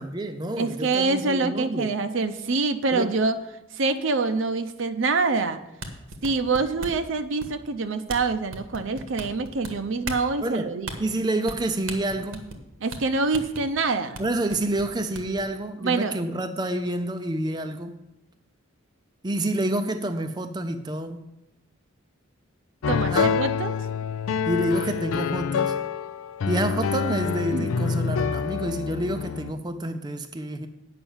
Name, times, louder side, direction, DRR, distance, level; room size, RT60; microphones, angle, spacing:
voice 1, 0.0-2.0 2.9-3.1 10.4-10.7 11.0-12.5 14.2-18.0 19.2-21.3 23.1-23.3 24.5-25.8 26.5-30.7, right 1 dB, 20° right, 7 dB, 0.5 m, -28 dB
voice 2, 0.6-3.4 3.8-5.6 6.2-10.9 12.8-14.2 15.8-16.2 22.9-23.7 27.5-27.7, right 3 dB, 65° right, 9 dB, 0.6 m, -25 dB
sound 1, 5.7-7.1 7.4-7.7 8.1-8.2 8.5-9.7 10.0-10.2 10.8-11.0 11.4-11.6 11.9-12.6 12.9-13.0 13.3-13.6 14.1-14.2 14.5-15.4, right 2 dB, 90° right, 1.4 m, -36 dB
sound 2, 22.8-29.5, left 6 dB, 80° left, 0.4 m, -27 dB
8.8 x 5.8 x 7.1 m, 0.91 s
head